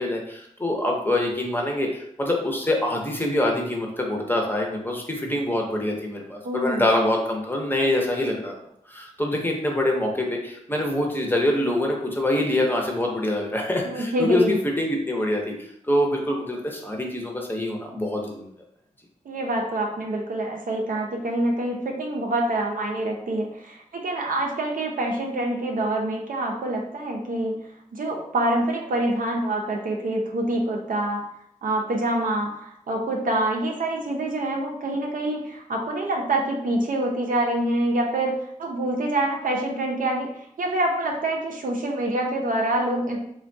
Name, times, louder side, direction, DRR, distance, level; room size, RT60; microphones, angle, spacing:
voice 1, 0.0-8.5 8.9-18.4, left 1 dB, 15° left, 0 dB, 0.6 m, -25 dB
voice 2, 6.4-6.9 13.8-14.6 19.3-27.5 27.9-31.2 31.6-38.3 38.6-40.3 40.6-43.2, right 1 dB, 80° right, 0 dB, 0.6 m, -26 dB
3.4 x 2.2 x 2.6 m, 0.73 s
wide cardioid pair, 80°, 14 cm